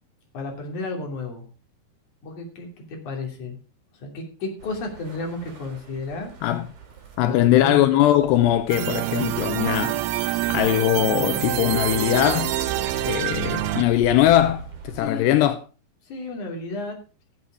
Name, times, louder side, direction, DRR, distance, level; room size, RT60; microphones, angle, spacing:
voice 1, 0.3-1.4 2.2-3.6 3.9-6.3 7.3-7.9 15.0-15.3 16.0-17.0, left 3 dB, 50° left, 4.1 m, -33 dB
sound 1, 4.6-15.0, right 5 dB, 50° right, 3.8 m, -41 dB
voice 2, 7.2-10.0 10.5-12.6 13.0-15.6, left 12 dB, 85° left, 2.9 m, -20 dB
sound 2, 8.7-13.8, right 14 dB, 75° right, 2.4 m, -26 dB
15.5 x 8.1 x 4.8 m
omnidirectional pair, 4.8 m